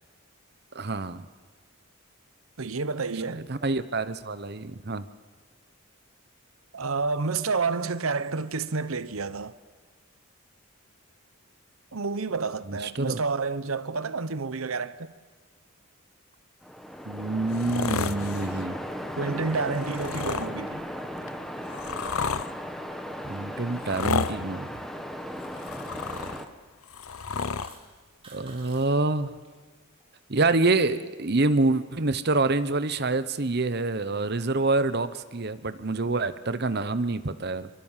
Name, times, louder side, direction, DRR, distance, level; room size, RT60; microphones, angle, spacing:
voice 1, 0.7-1.2 3.3-5.1 12.7-13.2 17.1-18.8 23.2-24.7 28.3-29.3 30.3-37.7, right 3 dB, 50° right, 0.9 m, -26 dB
voice 2, 2.6-3.4 6.7-9.5 11.9-15.1 19.2-20.8, right 4 dB, 75° right, 0.9 m, -29 dB
Waves surf, 16.6-26.5, equal, ahead, 1.4 m, -36 dB
sound 1, 17.5-18.6 19.7-20.5 21.3-22.5 23.8-24.4 25.4-26.5 26.8-27.7 28.8-28.9, left 5 dB, 75° left, 0.8 m, -31 dB
sound 2, 27.2-28.9 29.1-29.5 29.9-30.8, right 4 dB, 25° right, 4.9 m, -53 dB
24.0 x 24.0 x 7.4 m
head